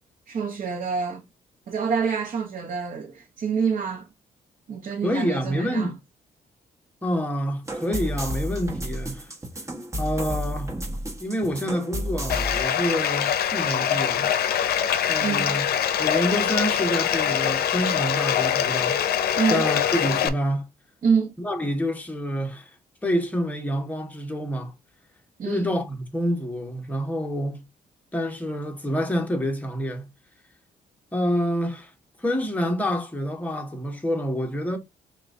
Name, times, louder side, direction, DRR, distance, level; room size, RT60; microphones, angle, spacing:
voice 1, 0.3-1.3 1.7-4.1 4.7-5.9 15.2-15.6 19.4-19.6 21.0-21.3 25.4-25.7, right 6 dB, 55° right, 0.9 m, -26 dB
voice 2, 5.0-6.0 7.0-9.3 10.0-10.8 11.2-14.4 15.1-15.6 16.0-19.0 19.5-20.7 21.4-22.7 23.0-24.7 25.4-27.6 28.1-30.1 31.1-31.9 32.2-34.8, equal, 10° left, 1.1 m, -27 dB
sound 1, 7.7-12.6, equal, 20° right, 1.3 m, -31 dB
Bathtub (filling or washing), 12.3-20.3, left 9 dB, 80° left, 0.5 m, -24 dB
5.9 x 2.4 x 2.6 m
cardioid pair, 95°, 16 cm